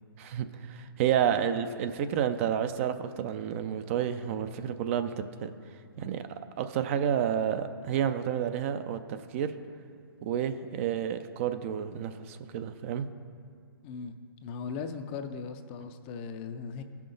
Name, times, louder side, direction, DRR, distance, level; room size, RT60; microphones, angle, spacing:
voice 1, 0.2-5.5 6.0-6.3 6.6-9.5 10.2-13.1, right 9 dB, 35° right, 10 dB, 0.4 m, -30 dB
voice 2, 13.8-14.2 14.4-16.8, left 5 dB, 30° left, 8 dB, 0.5 m, -38 dB
15.5 x 5.8 x 3.9 m, 2.2 s
hypercardioid pair, 140°, 12 cm